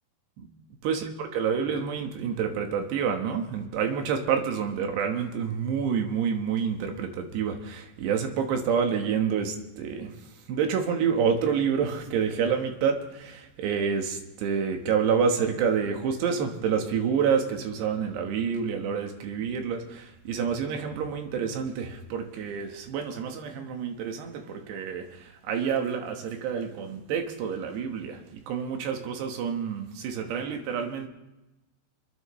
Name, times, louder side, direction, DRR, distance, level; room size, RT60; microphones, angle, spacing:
voice 1, 0.8-31.1, right 7 dB, 80° right, 4 dB, 3.5 m, -28 dB
28.0 x 10.5 x 3.2 m, 0.99 s
omnidirectional pair, 4.9 m